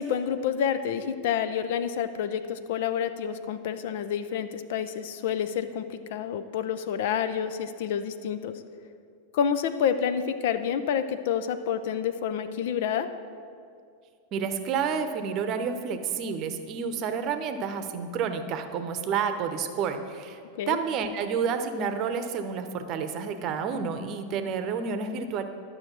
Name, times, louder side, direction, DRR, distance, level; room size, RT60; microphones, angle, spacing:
voice 1, 0.0-5.8 6.1-8.5 9.3-13.1 20.5-20.8, left 8 dB, 50° left, 11 dB, 0.5 m, -28 dB
voice 2, 14.3-20.4 20.7-25.4, right 6 dB, 35° right, 8 dB, 0.8 m, -30 dB
11.5 x 6.5 x 7.3 m, 2.3 s
figure-of-eight pair, 90°, 0 cm